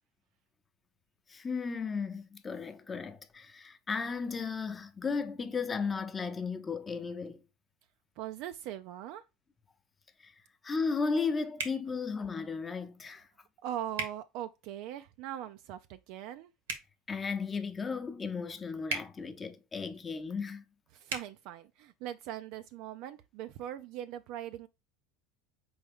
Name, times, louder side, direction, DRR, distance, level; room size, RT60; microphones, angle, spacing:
voice 1, 1.3-7.4 10.2-10.3 10.6-13.3 17.1-20.6, left 5 dB, 25° left, 0.7 m, -35 dB
voice 2, 8.2-9.2 13.6-16.5 20.9-24.7, right 11 dB, 65° right, 0.3 m, -41 dB
sound 1, 11.6-11.8 13.9-14.1 16.6-16.9 18.9-19.1 21.1-21.3, right 4 dB, 85° right, 1.1 m, -35 dB
4.3 x 3.5 x 3.4 m
hypercardioid pair, 85°, 0 cm